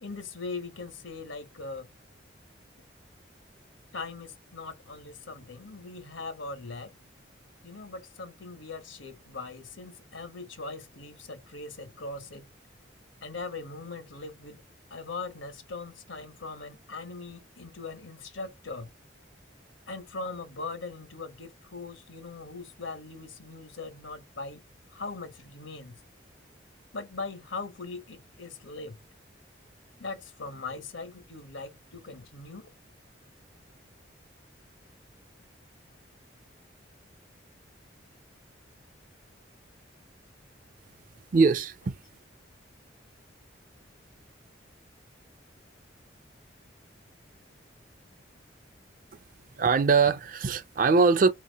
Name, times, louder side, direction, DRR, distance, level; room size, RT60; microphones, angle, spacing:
voice 1, 0.0-1.9 3.9-6.9 7.6-12.5 13.2-14.6 14.9-18.9 19.9-24.6 24.9-26.0 26.9-29.0 30.0-32.7, left 3 dB, 90° left, 1.2 m, -40 dB
voice 2, 41.3-41.9 49.6-51.3, right 4 dB, 45° right, 0.4 m, -22 dB
4.4 x 2.9 x 4.0 m
head